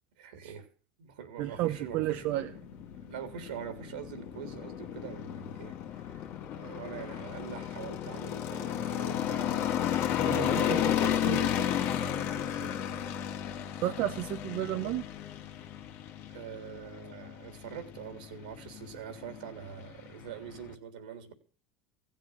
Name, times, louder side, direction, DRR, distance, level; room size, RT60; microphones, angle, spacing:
voice 1, 0.2-0.7 1.0-2.5 3.0-9.5 12.4-13.0 16.3-21.3, right 8 dB, 85° right, 8 dB, 3.5 m, -44 dB
sound 1, 1.4-20.7, left 10 dB, 55° left, 1.8 m, -34 dB
voice 2, 1.4-2.5 10.2-11.7 13.8-15.1, right 15 dB, 60° right, 7 dB, 0.9 m, -33 dB
16.5 x 7.6 x 8.2 m, 0.41 s
supercardioid pair, 100°, 5 cm